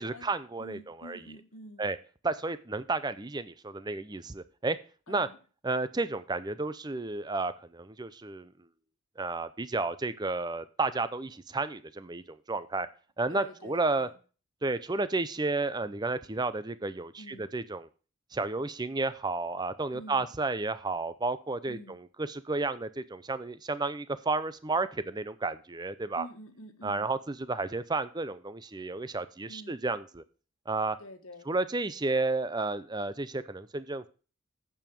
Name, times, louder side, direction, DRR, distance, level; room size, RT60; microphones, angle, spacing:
voice 1, 0.0-1.2 1.8-2.0 2.2-4.8 5.1-5.3 5.6-8.5 9.2-12.9 13.2-14.1 14.6-17.9 18.3-26.3 26.8-30.2 30.7-31.0 31.5-34.1, right 3 dB, 20° right, 0.6 m, -32 dB
voice 2, 0.6-1.9 5.1-5.4 13.3-14.1 17.2-17.5 19.9-20.3 21.7-22.0 26.1-27.1 29.5-29.8 31.0-31.5, left 1 dB, 75° left, 1.5 m, -47 dB
8.9 x 6.9 x 5.3 m
head